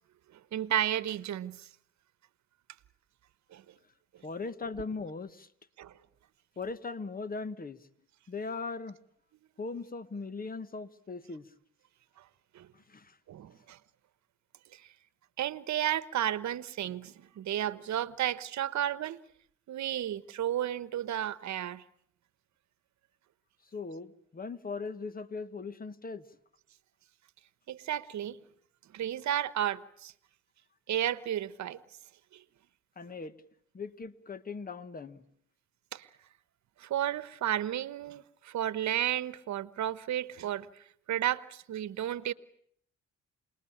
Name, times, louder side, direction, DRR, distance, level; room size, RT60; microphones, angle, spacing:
voice 1, 0.5-1.7 3.5-3.7 5.8-5.9 12.2-12.3 12.5-12.7 13.3-13.8 14.7-14.9 15.4-19.2 19.7-21.8 27.7-28.4 28.9-30.1 30.9-31.8 32.3-32.4 35.9-36.1 36.8-42.3, right 11 dB, 65° right, 1.2 m, -33 dB
voice 2, 4.2-5.5 6.6-7.8 8.3-9.0 9.6-11.4 12.9-13.0 23.7-26.2 33.0-33.3 33.7-35.2, left 4 dB, 30° left, 1.4 m, -39 dB
28.0 x 20.0 x 8.7 m
cardioid pair, 90°, 30 cm